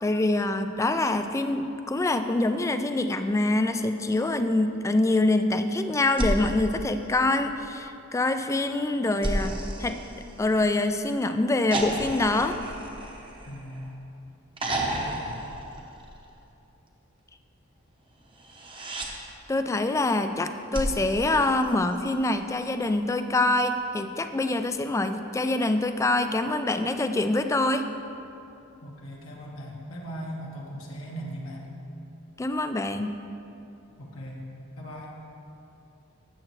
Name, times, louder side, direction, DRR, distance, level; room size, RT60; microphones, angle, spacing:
voice 1, 0.0-10.0 10.4-12.6 19.5-27.9 32.4-33.1, left 2 dB, 15° left, 8 dB, 0.3 m, -25 dB
sound 1, 6.1-7.7 9.2-10.9 11.7-14.0 14.6-16.4 18.4-19.1 20.7-22.2 23.7-23.8, right 1 dB, 25° right, 0.8 m, -33 dB
voice 2, 13.5-13.9 14.8-15.4 28.8-31.7 34.0-34.4 34.8-35.1, equal, 75° left, -3 dB, 1.3 m, -39 dB
13.5 x 7.6 x 3.2 m, 2.8 s
head